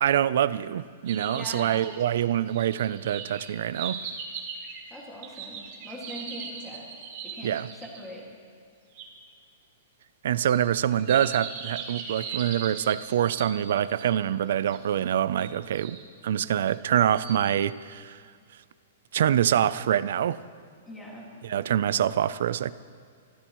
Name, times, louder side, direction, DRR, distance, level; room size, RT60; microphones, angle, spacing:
voice 1, 0.0-4.0 7.4-7.7 10.2-18.2 19.1-20.4 21.4-22.7, right 10 dB, 55° right, 17 dB, 0.4 m, -25 dB
sound 1, 1.1-8.1 9.0-9.1 10.4-14.1 14.7-14.8 15.4-16.0 16.7-17.5, right 6 dB, 30° right, 1.9 m, -39 dB
voice 2, 1.4-1.8 4.9-6.9 7.2-8.3 20.8-21.3, equal, 5° left, -3 dB, 2.1 m, -42 dB
25.5 x 13.5 x 3.1 m, 2.2 s
hypercardioid pair, 180°, 0 cm